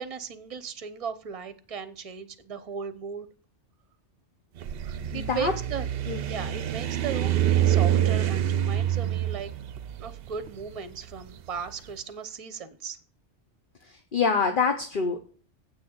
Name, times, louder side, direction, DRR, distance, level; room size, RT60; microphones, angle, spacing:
voice 1, 0.0-3.3 4.8-5.9 6.3-9.5 10.0-13.0, right 6 dB, 35° right, 0.9 m, -37 dB
sound 1, 4.6-11.7, right 11 dB, 60° right, 0.8 m, -26 dB
voice 2, 5.1-5.5 6.1-6.2 13.8-15.3, left 5 dB, 50° left, 1.1 m, -26 dB
8.2 x 6.2 x 7.9 m
omnidirectional pair, 1.2 m